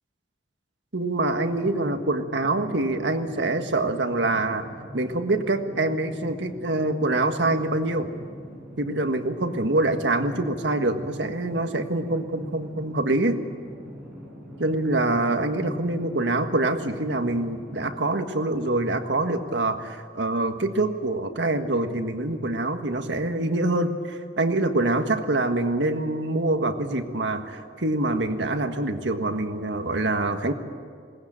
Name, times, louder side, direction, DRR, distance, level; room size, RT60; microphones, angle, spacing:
voice 1, 0.9-4.7 4.9-8.1 8.8-13.4 14.6-30.5, right 2 dB, 85° right, 7 dB, 1.6 m, -25 dB
sound 1, 1.4-18.1, equal, 5° right, 7.0 m, -43 dB
21.5 x 19.0 x 8.9 m, 2.1 s
head